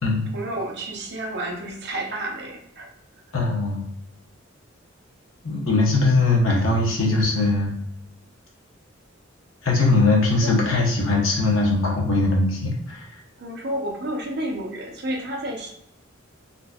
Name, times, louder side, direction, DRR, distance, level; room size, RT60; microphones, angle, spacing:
voice 1, 0.3-2.9 10.4-10.6 13.4-15.7, right 1 dB, 55° right, 1 dB, 0.7 m, -30 dB
voice 2, 3.3-3.8 5.4-7.7 9.6-13.0, left 2 dB, 80° left, -1 dB, 1.0 m, -20 dB
3.8 x 2.7 x 2.3 m, 0.75 s
head